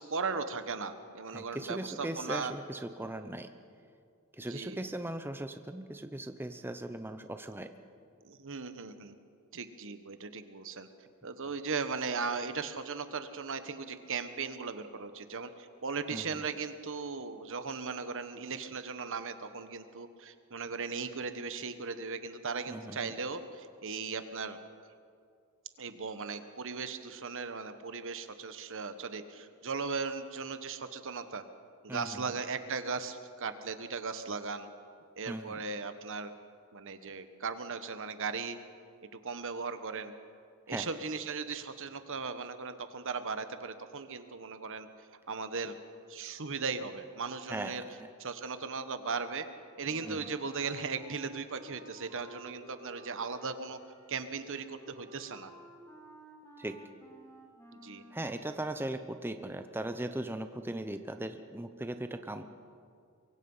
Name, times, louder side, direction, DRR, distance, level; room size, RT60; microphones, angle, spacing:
voice 1, 0.0-2.5 4.5-4.8 8.2-9.1 9.5-10.9 11.2-24.6 25.8-31.4 31.8-34.7 35.2-36.3 36.7-38.6 39.1-40.1 40.7-44.9 45.3-45.7 46.1-47.8 48.2-49.5 49.8-53.8 54.1-55.5 57.8-58.0, right 4 dB, 60° right, 10 dB, 1.3 m, -37 dB
voice 2, 1.3-3.5 4.3-7.7 16.1-16.4 22.7-23.1 31.9-32.2 35.3-35.6 40.7-40.9 47.5-47.8 50.0-50.2 56.6-56.8 58.1-62.4, right 1 dB, 10° right, 8 dB, 0.8 m, -38 dB
Wind instrument woodwind instrument, 49.9-58.5, right 1 dB, 15° left, 2.8 m, -54 dB
24.0 x 23.5 x 5.6 m, 2.3 s
head